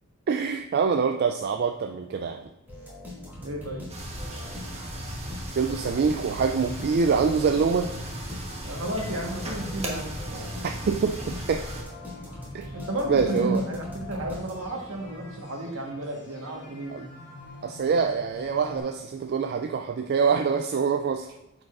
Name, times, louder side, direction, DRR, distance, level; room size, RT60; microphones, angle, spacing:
voice 1, 0.3-2.4 5.6-7.9 10.9-11.6 12.5-12.6 13.1-13.6 16.9-17.1 17.6-21.3, right 5 dB, 50° right, 5 dB, 0.3 m, -25 dB
sound 1, 2.7-14.9, left 1 dB, 10° right, 2.0 m, -42 dB
voice 2, 3.4-3.8 8.6-10.2 12.7-17.0, right 1 dB, 70° right, 1 dB, 1.4 m, -32 dB
sound 2, 3.9-11.8, right 1 dB, 30° right, 1.2 m, -37 dB
sound 3, 7.8-18.8, left 2 dB, 60° left, 2.1 m, -45 dB
9.2 x 4.9 x 2.5 m, 0.96 s
head